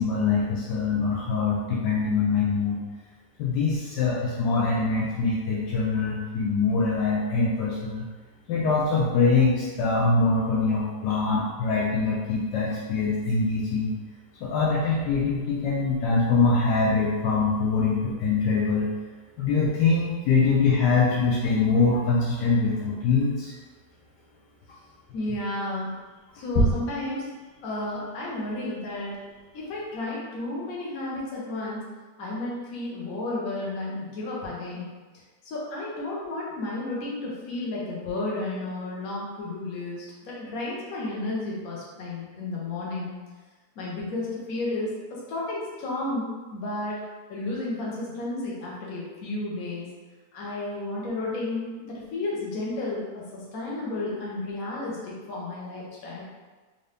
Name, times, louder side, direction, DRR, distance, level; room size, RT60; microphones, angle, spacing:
voice 1, 0.0-2.8 3.4-8.1 8.5-13.9 14.4-18.9 19.4-23.5 26.6-26.7, left 4 dB, 75° left, -5 dB, 1.2 m, -23 dB
voice 2, 25.1-25.9 26.3-27.2 27.6-29.2 29.5-31.8 32.2-34.9 35.4-43.2 43.8-47.0 47.3-49.9 50.3-56.2, left 2 dB, 60° left, -5 dB, 1.3 m, -32 dB
3.8 x 2.7 x 3.3 m, 1.3 s
omnidirectional pair, 1.9 m